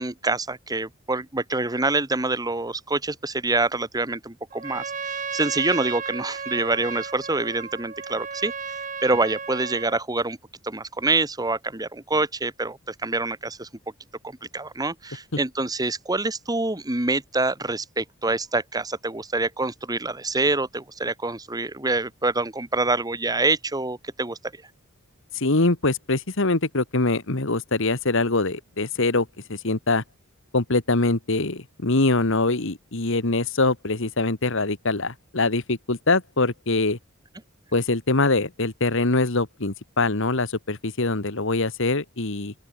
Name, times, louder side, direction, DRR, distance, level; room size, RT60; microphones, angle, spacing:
voice 1, 0.0-10.4 10.6-13.7 14.2-24.4, right 2 dB, 20° right, 1.7 m, -26 dB
Trumpet, 4.5-10.0, right 6 dB, 40° right, 2.6 m, -34 dB
voice 2, 25.3-30.0 30.5-37.0 37.7-42.5, left 2 dB, 65° left, 1.9 m, -23 dB
open air
head